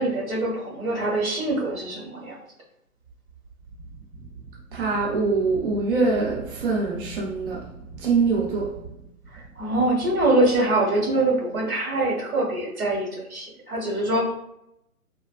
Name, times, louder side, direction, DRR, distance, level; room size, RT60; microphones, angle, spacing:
voice 1, 0.0-2.3 9.3-14.3, right 2 dB, 75° right, 1.2 m, -24 dB
voice 2, 4.7-7.7 7.9-9.0, right 4 dB, 40° right, 0.6 m, -24 dB
3.3 x 2.2 x 2.3 m
figure-of-eight pair, 130°, 43 cm